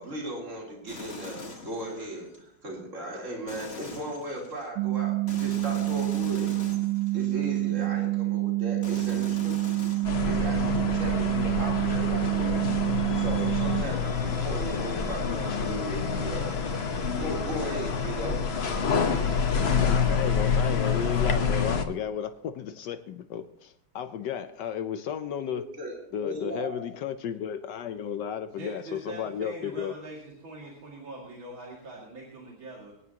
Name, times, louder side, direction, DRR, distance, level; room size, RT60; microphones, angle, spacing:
voice 1, 0.0-6.6 7.1-9.7 10.2-12.6 13.2-16.6 16.9-18.4 25.5-26.8, equal, 35° right, -3 dB, 3.7 m, -37 dB
sound 1, 0.9-2.4 3.5-4.7 5.3-7.9 8.8-10.8, left 4 dB, 30° left, 1.6 m, -43 dB
sound 2, 4.8-13.8, right 20 dB, 85° right, 0.8 m, -27 dB
sound 3, 10.0-21.9, left 5 dB, 45° left, 0.8 m, -27 dB
voice 2, 19.8-25.6 26.1-29.9, left 8 dB, 70° left, 10 dB, 1.0 m, -33 dB
voice 3, 28.6-32.9, right 2 dB, 65° right, -3 dB, 3.1 m, -42 dB
24.5 x 9.9 x 2.9 m, 0.72 s
omnidirectional pair, 2.4 m